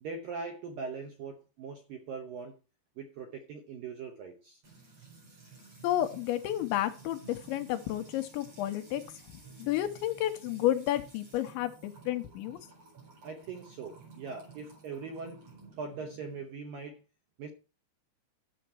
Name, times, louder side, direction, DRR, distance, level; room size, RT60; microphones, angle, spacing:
voice 1, 0.0-2.6 3.0-4.6 13.2-15.5 15.8-17.0 17.4-17.5, right 5 dB, 75° right, 2.1 m, -41 dB
Music / Water tap faucet / Trickle dribble, 4.6-16.4, right 4 dB, 35° right, 5.3 m, -53 dB
voice 2, 5.8-9.0 9.6-12.7, left 13 dB, 80° left, 3.0 m, -31 dB
12.0 x 7.1 x 4.5 m
omnidirectional pair, 5.5 m